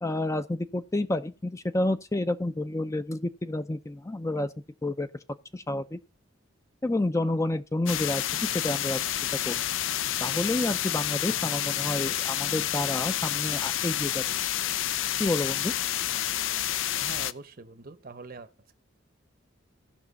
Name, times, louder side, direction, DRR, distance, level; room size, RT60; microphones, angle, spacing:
voice 1, 0.0-4.5 4.8-5.1 5.5-6.0 6.8-9.0 9.5-9.6 10.2-14.2 15.2-15.7, left 2 dB, 15° left, 0.4 m, -29 dB
sound 1, 7.9-17.3, left 12 dB, 75° left, 0.5 m, -29 dB
voice 2, 17.0-18.5, right 3 dB, 50° right, 0.8 m, -43 dB
16.5 x 6.0 x 4.0 m
head